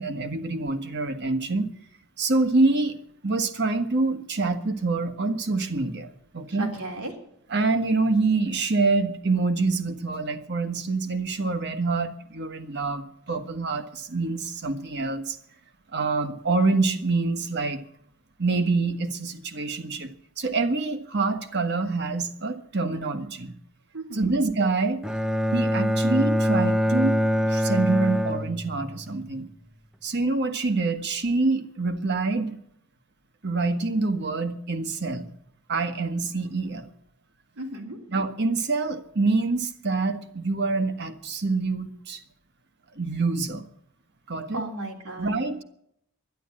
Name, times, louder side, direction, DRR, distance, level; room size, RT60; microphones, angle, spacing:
voice 1, 0.0-1.7 2.2-3.0 3.2-6.7 7.5-15.4 15.9-17.8 18.4-23.5 24.1-25.0 25.5-29.5 30.0-32.6 33.4-35.3 35.7-36.9 38.1-42.2 42.9-43.7 44.3-44.6 45.2-45.6, right 3 dB, 50° right, 7 dB, 1.4 m, -26 dB
voice 2, 6.5-7.1 23.9-24.3 37.6-38.0 44.5-45.4, right 2 dB, 90° right, 1 dB, 3.6 m, -34 dB
Bowed string instrument, 25.0-29.1, equal, 5° right, 0.5 m, -24 dB
12.0 x 11.0 x 8.6 m, 0.70 s
head